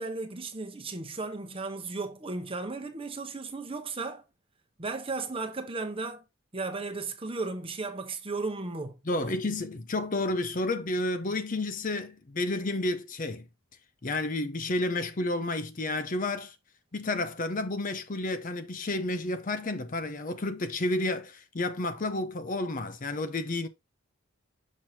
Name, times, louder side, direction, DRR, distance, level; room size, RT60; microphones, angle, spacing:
voice 1, 0.0-4.2 4.8-6.2 6.5-9.4, right 3 dB, 25° right, 0.9 m, -35 dB
voice 2, 9.1-13.5 14.0-16.6 16.9-23.7, left 2 dB, 35° left, 0.6 m, -31 dB
6.3 x 6.0 x 2.8 m
head